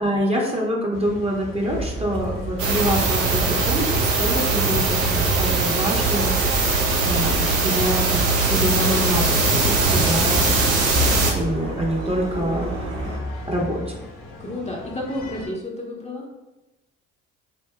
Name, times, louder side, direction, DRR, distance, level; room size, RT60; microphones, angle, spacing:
voice 1, 0.0-6.3 7.0-10.4 11.2-12.7 13.5-14.0, equal, 15° right, -3 dB, 1.1 m, -26 dB
sound 1, 0.9-15.5, left 1 dB, 55° left, 1.2 m, -36 dB
sound 2, 1.7-13.2, right 3 dB, 35° right, 1.4 m, -32 dB
sound 3, 2.6-11.3, right 3 dB, 85° right, 0.7 m, -21 dB
voice 2, 12.4-13.4 14.4-16.4, left 1 dB, 15° left, -3 dB, 1.1 m, -32 dB
8.0 x 2.7 x 2.3 m, 1.0 s
figure-of-eight pair, 55°, 39 cm